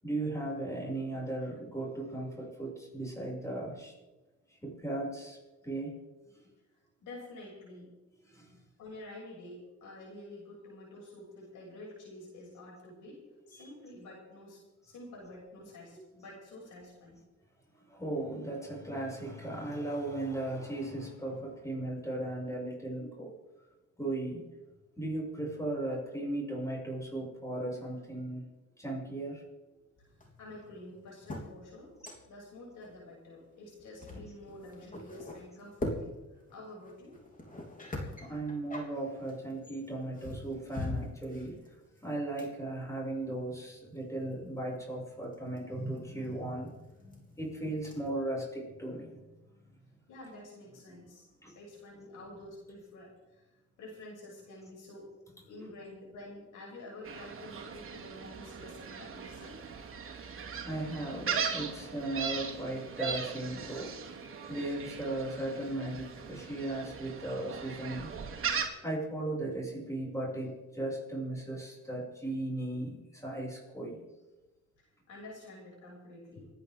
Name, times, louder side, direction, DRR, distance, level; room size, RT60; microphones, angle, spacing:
voice 1, 0.0-3.9 4.5-5.4 5.6-6.0 8.3-8.5 13.5-13.7 17.9-23.3 24.0-24.5 25.0-28.5 28.8-29.4 34.1-34.2 38.2-41.6 42.0-49.2 51.4-51.5 55.6-55.7 60.6-64.2 64.5-68.1 68.8-74.0, right 1 dB, 10° left, -3 dB, 6.3 m, -37 dB
voice 2, 7.0-7.9 8.8-17.2 30.4-31.9 32.2-36.1 36.5-37.2 50.1-51.3 51.6-53.4 53.8-55.1 55.5-59.6 75.1-76.5, left 1 dB, 80° left, -4 dB, 6.9 m, -49 dB
sound 1, 30.0-32.5 32.8-33.0 33.7-48.1, left 2 dB, 25° left, 3.4 m, -44 dB
Gull seagull, 57.0-68.7, right 6 dB, 45° right, 2.2 m, -39 dB
28.5 x 10.0 x 3.7 m, 1.1 s
cardioid pair, 90°, 30 cm